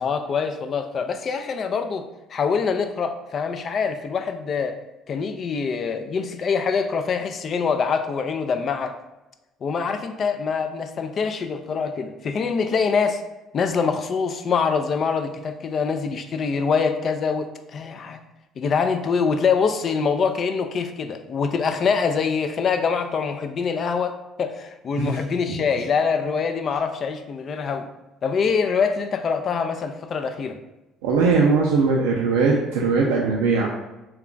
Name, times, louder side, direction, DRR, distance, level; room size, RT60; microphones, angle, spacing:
voice 1, 0.0-2.0 2.3-4.8 5.1-8.9 9.6-13.2 13.5-18.2 18.6-27.9 28.2-30.6, left 5 dB, 50° left, 8 dB, 0.3 m, -24 dB
voice 2, 31.0-33.7, right 4 dB, 90° right, -2 dB, 0.4 m, -20 dB
2.3 x 2.3 x 3.7 m, 1.0 s
supercardioid pair, 80°, 0 cm